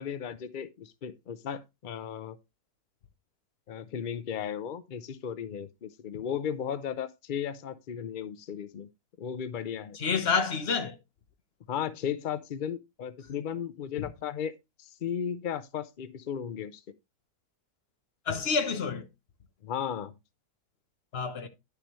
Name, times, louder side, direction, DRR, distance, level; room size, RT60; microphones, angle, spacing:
voice 1, 0.0-2.4 3.7-8.9 9.2-10.0 11.7-16.8 19.6-20.1, left 8 dB, 85° left, 0.4 m, -35 dB
voice 2, 9.9-11.0 14.0-14.1 18.3-19.1 21.1-21.5, left 5 dB, 45° left, 1.1 m, -28 dB
10.0 x 6.8 x 3.1 m
omnidirectional pair, 1.8 m